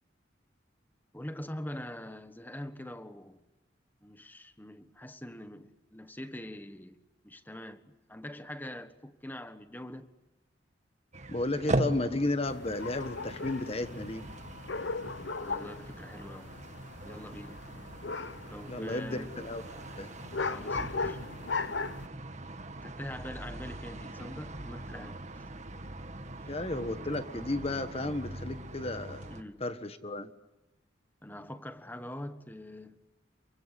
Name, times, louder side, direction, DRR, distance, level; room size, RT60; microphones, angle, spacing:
voice 1, 1.1-3.4 4.0-7.0 7.2-10.1 15.4-16.6 17.0-17.6 18.5-19.3 20.5-21.2 22.8-25.2 29.3-29.6 31.2-33.0, left 1 dB, 10° left, 1.4 m, -43 dB
sound 1, 11.1-29.4, right 1 dB, 40° right, 1.7 m, -40 dB
voice 2, 11.3-14.2 18.7-19.6 19.9-20.1 26.5-29.3 29.6-30.3, left 2 dB, 35° left, 1.4 m, -33 dB
sound 2, 12.4-22.1, left 4 dB, 70° left, 1.0 m, -38 dB
29.0 x 24.0 x 8.4 m
head